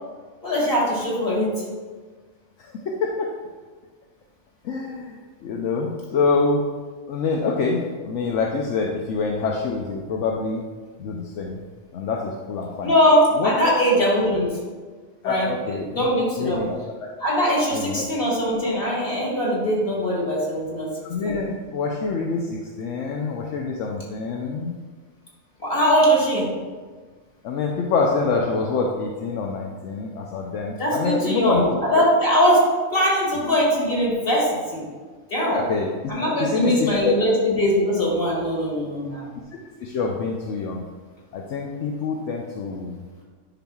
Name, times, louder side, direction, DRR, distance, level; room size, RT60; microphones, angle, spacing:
voice 1, 0.4-1.6 12.8-14.6 15.2-16.6 17.2-20.9 21.2-21.4 25.6-26.5 30.8-34.9 35.3-35.6 36.1-39.3, equal, 45° left, -4 dB, 2.3 m, -21 dB
voice 2, 2.6-3.3 4.6-5.2 5.4-6.6 7.1-10.6 11.0-11.6 11.9-12.9 13.4-13.7 15.2-16.1 16.4-17.1 17.7-18.0 21.1-24.8 27.4-31.9 35.5-35.9 36.4-37.2 39.8-40.8 41.3-43.0, left 4 dB, 75° left, -1 dB, 1.0 m, -26 dB
10.0 x 5.9 x 2.4 m, 1.4 s
omnidirectional pair, 1.3 m